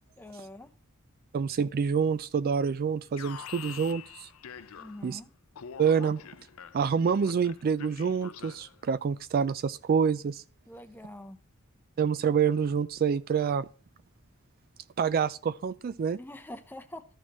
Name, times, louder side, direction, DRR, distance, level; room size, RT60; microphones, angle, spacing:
voice 1, 0.2-0.7 4.8-5.3 10.7-11.4 16.2-17.1, left 1 dB, 10° left, 0.7 m, -44 dB
voice 2, 1.3-4.3 5.0-5.2 5.8-6.2 6.7-10.4 12.0-13.7 15.0-16.2, right 6 dB, 45° right, 0.3 m, -27 dB
Alarm, 3.2-5.2 5.5-8.8, left 8 dB, 75° left, 0.5 m, -46 dB
13.0 x 6.3 x 3.0 m
head